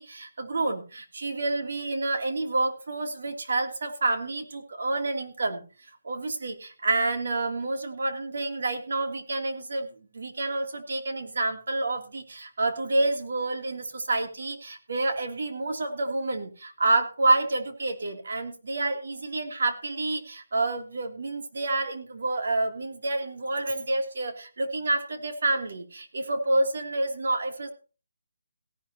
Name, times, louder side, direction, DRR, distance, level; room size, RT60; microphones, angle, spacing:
voice 1, 0.0-5.7 6.0-27.7, right 2 dB, 65° right, 5 dB, 2.9 m, -28 dB
17.5 x 11.5 x 2.9 m, 0.33 s
hypercardioid pair, 170°, 0 cm